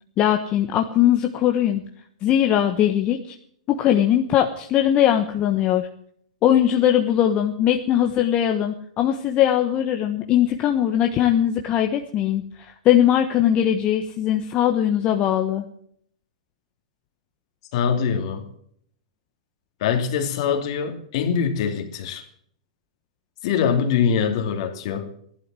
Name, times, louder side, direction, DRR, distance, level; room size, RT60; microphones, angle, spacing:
voice 1, 0.2-1.8 2.2-3.3 3.7-5.9 6.4-15.7, left 11 dB, 30° left, 1.2 m, -20 dB
voice 2, 17.7-18.5 19.8-22.2 23.4-25.1, left 7 dB, 55° left, 2.8 m, -23 dB
15.0 x 11.5 x 7.7 m
hypercardioid pair, 115°, 4 cm